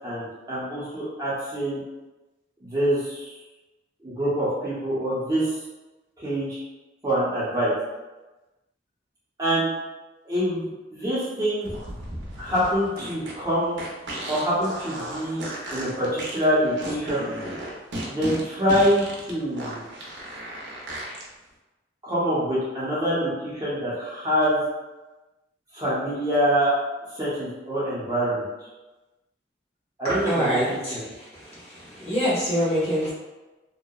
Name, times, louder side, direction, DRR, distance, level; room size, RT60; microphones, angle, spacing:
voice 1, 0.0-1.8 2.6-3.3 4.0-5.5 6.2-6.6 7.0-7.7 9.4-9.7 10.2-11.7 12.4-13.8 14.2-17.3 18.1-19.8 22.0-24.6 25.7-26.7 27.1-28.4 30.0-31.0, equal, 20° right, -9 dB, 0.7 m, -25 dB
sound 1, 11.6-21.2, right 1 dB, 90° right, 0.5 m, -35 dB
voice 2, 30.0-31.0 31.5-33.1, equal, 40° left, -8 dB, 1.1 m, -25 dB
2.7 x 2.1 x 2.2 m, 1.1 s
head